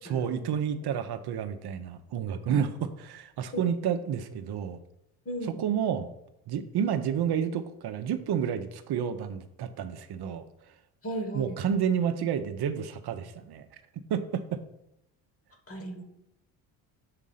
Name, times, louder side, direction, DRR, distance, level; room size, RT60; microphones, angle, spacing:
voice 1, 0.0-4.8 5.4-6.1 6.5-10.4 11.3-13.7 14.1-14.6, right 8 dB, 50° right, 10 dB, 0.8 m, -30 dB
voice 2, 5.2-5.6 11.0-11.6 15.7-16.0, equal, 30° left, 5 dB, 1.4 m, -35 dB
6.7 x 3.6 x 5.5 m, 0.82 s
supercardioid pair, 65°, 49 cm